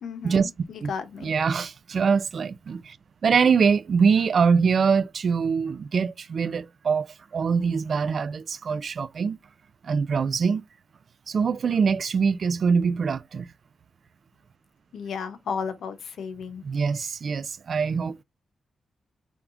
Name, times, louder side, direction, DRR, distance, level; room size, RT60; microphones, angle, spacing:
voice 1, 0.0-1.3 14.9-16.6, left 6 dB, 75° left, 0.8 m, -34 dB
voice 2, 1.2-3.0 3.2-7.1 7.3-9.4 9.8-10.6 11.3-13.5 16.6-18.2, right 5 dB, 45° right, 0.3 m, -23 dB
4.6 x 3.5 x 2.5 m
wide cardioid pair, 150°, 0 cm